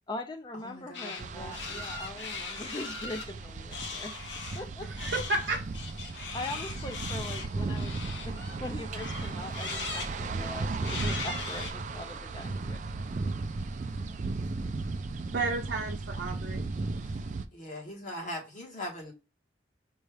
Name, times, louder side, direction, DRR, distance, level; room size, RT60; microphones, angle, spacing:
voice 1, 0.1-4.1 4.5-4.9 6.3-12.8, left 2 dB, 25° left, 0.5 m, -41 dB
voice 2, 0.6-2.1 17.0-17.2 17.5-19.1, left 1 dB, 45° left, 1.4 m, -41 dB
sound 1, 0.9-1.2 1.5-3.3 3.7-4.6 5.0-8.6 8.9-10.1 10.8-11.7, left 5 dB, 80° left, 0.8 m, -39 dB
sound 2, 1.2-17.5, right 3 dB, 40° right, 0.4 m, -36 dB
voice 3, 4.9-5.6 15.3-16.6, right 3 dB, 75° right, 0.7 m, -32 dB
5.3 x 2.4 x 3.3 m
head